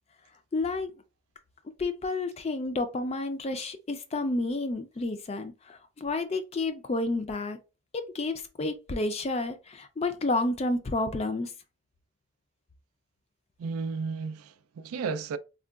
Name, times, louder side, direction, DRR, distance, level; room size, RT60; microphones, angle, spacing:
voice 1, 0.5-0.9 1.8-7.6 7.9-11.5, left 2 dB, 30° left, 0.3 m, -30 dB
voice 2, 13.6-15.4, right 4 dB, 85° right, 0.3 m, -33 dB
3.6 x 2.2 x 2.2 m
head